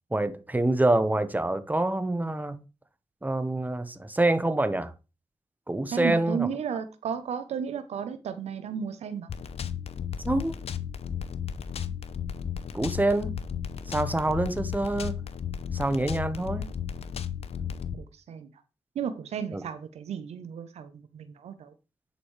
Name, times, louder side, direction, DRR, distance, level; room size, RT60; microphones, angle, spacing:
voice 1, 0.1-2.6 3.2-4.9 5.7-6.5 10.2-10.5 12.7-13.3 13.9-15.2 15.7-16.6 19.5-19.6, right 2 dB, 15° right, 1.0 m, -26 dB
voice 2, 5.9-9.3 17.6-18.5 18.9-21.7, right 7 dB, 80° right, 0.7 m, -34 dB
sound 1, 9.3-18.0, left 8 dB, 70° left, 0.7 m, -34 dB
9.9 x 5.2 x 3.2 m
supercardioid pair, 45°, 11 cm